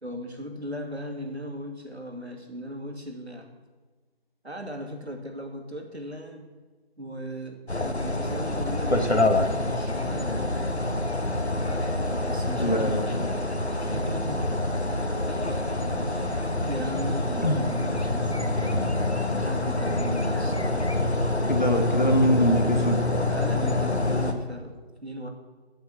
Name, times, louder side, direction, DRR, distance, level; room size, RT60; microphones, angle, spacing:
voice 1, 0.0-3.5 4.4-6.5 7.0-10.6 12.2-13.4 13.8-14.5 16.0-19.0 19.3-20.9 23.1-25.3, equal, 85° right, 3 dB, 2.6 m, -37 dB
sound 1, 7.7-24.3, left 2 dB, 90° left, 1.7 m, -26 dB
voice 2, 12.6-13.2 17.4-17.6 21.5-23.0, equal, 50° left, 5 dB, 1.7 m, -24 dB
13.0 x 7.9 x 7.2 m, 1.3 s
figure-of-eight pair, 175°, 32 cm